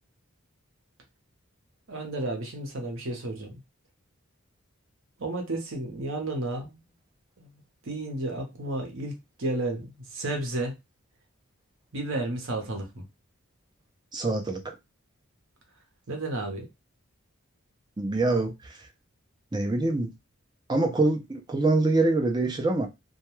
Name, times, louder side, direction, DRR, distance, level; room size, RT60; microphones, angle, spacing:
voice 1, 1.9-3.6 5.2-6.8 7.4-10.8 11.9-13.1 16.1-16.7, right 2 dB, 60° right, 0.8 m, -32 dB
voice 2, 14.1-14.7 18.0-18.9 19.5-20.1 20.7-22.9, right 2 dB, 20° right, 0.4 m, -25 dB
2.2 x 2.2 x 3.0 m
head